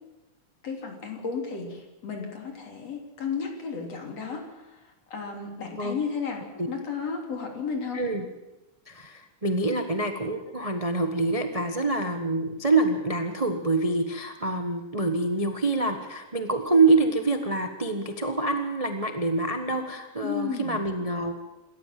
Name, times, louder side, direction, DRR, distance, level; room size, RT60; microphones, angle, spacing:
voice 1, 0.6-8.0 20.2-20.8, left 5 dB, 55° left, 2 dB, 4.4 m, -33 dB
voice 2, 7.9-8.2 8.9-21.3, right 3 dB, 60° right, 6 dB, 0.3 m, -26 dB
27.0 x 14.0 x 7.6 m, 1.0 s
omnidirectional pair, 3.4 m